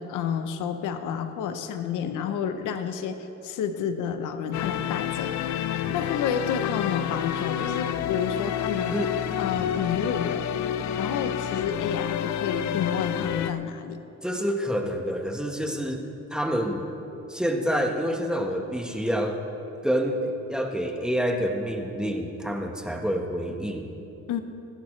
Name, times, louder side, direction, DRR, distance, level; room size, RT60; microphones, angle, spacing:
voice 1, 0.0-5.3 5.9-9.0 9.4-10.5 11.0-14.0 24.3-24.4, left 7 dB, 90° left, 8 dB, 0.9 m, -30 dB
sound 1, 4.5-13.5, left 10 dB, 65° left, 0.6 m, -29 dB
voice 2, 14.2-16.9 17.3-19.4 19.8-23.9, equal, 5° right, 2 dB, 1.4 m, -28 dB
25.0 x 11.5 x 3.3 m, 2.9 s
cardioid pair, 90°, 30 cm